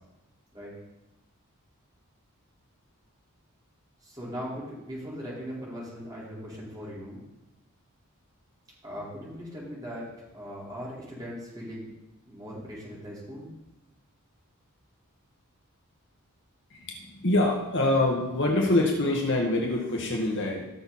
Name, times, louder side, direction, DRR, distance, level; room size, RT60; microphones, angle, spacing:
voice 1, 4.0-7.2 8.8-10.1 10.3-11.9 12.3-13.5, equal, 20° right, -7 dB, 4.7 m, -39 dB
voice 2, 16.7-20.7, left 2 dB, 55° left, 0 dB, 1.8 m, -25 dB
16.5 x 6.8 x 4.4 m, 0.98 s
head